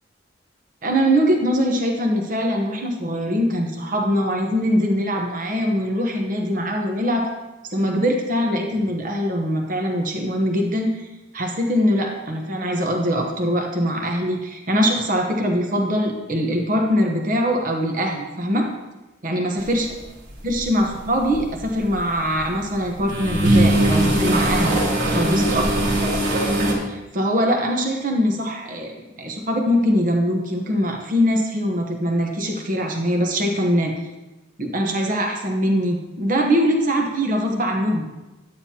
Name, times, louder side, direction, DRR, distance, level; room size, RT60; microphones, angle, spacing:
voice 1, 0.8-7.3 7.6-11.1 11.3-18.7 19.2-19.9 20.4-24.8 25.1-25.9 26.9-28.9 29.2-33.9 34.6-38.1, equal, 45° right, 2 dB, 1.0 m, -22 dB
sound 1, 20.3-20.6 21.1-22.4 22.8-26.7, right 1 dB, 65° right, 3.0 m, -20 dB
11.5 x 9.2 x 2.8 m, 1.1 s
head